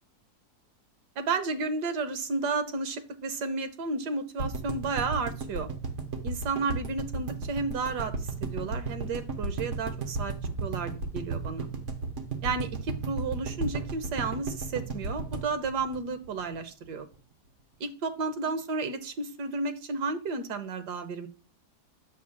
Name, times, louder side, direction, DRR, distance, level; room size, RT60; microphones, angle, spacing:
voice 1, 1.2-5.7 6.2-8.1 8.4-10.3 10.6-11.7 12.4-17.1 17.8-21.3, right 4 dB, 80° right, 9 dB, 1.5 m, -32 dB
sound 1, 4.4-16.5 16.8-16.9 17.1-17.2, right 4 dB, 50° right, 1.4 m, -33 dB
9.0 x 7.1 x 2.2 m, 0.34 s
omnidirectional pair, 1.7 m